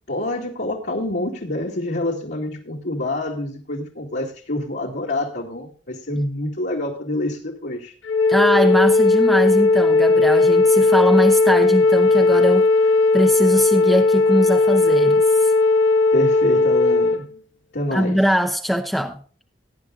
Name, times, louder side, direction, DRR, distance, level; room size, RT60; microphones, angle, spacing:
voice 1, 0.1-7.9 16.1-17.3 17.7-18.2, left 1 dB, 60° left, 2.3 m, -27 dB
Wind instrument woodwind instrument, 8.0-17.2, left 3 dB, 80° left, 1.5 m, -16 dB
voice 2, 8.3-15.5 17.9-19.2, equal, ahead, 0.7 m, -21 dB
18.0 x 10.5 x 2.4 m
head